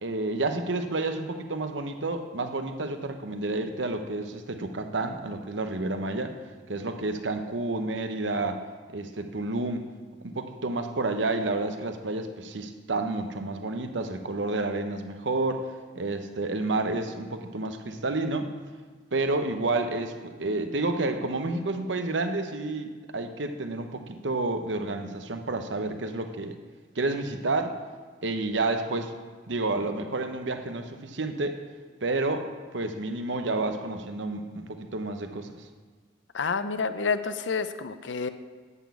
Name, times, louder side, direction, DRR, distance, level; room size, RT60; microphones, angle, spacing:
voice 1, 0.0-6.3 6.7-8.6 8.9-9.8 10.2-15.6 15.9-18.5 19.1-26.6 27.0-27.8 28.2-29.1 29.5-31.6 32.0-32.4 32.7-35.7, right 2 dB, 75° right, 7 dB, 0.9 m, -30 dB
voice 2, 36.3-38.3, left 5 dB, 75° left, 11 dB, 0.6 m, -29 dB
11.0 x 6.2 x 8.3 m, 1.5 s
head